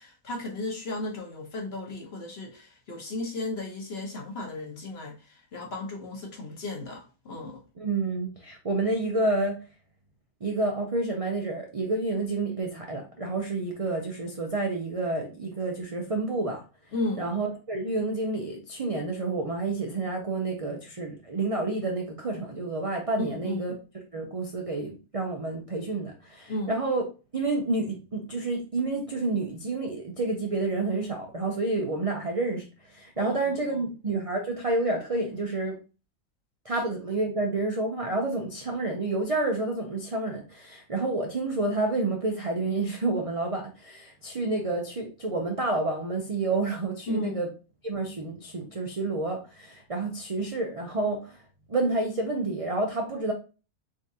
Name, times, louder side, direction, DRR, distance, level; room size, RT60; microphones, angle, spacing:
voice 1, 0.0-7.6 16.9-17.3 23.2-23.8 26.5-26.7 33.2-33.9 36.7-36.8 47.1-47.4, left 2 dB, 45° left, 1.1 m, -35 dB
voice 2, 7.8-9.6 10.4-16.6 17.2-23.7 24.1-27.0 27.3-35.8 36.6-47.5 47.8-51.4 51.7-53.3, right 2 dB, 65° right, 0.3 m, -29 dB
3.7 x 3.6 x 2.7 m
omnidirectional pair, 1.6 m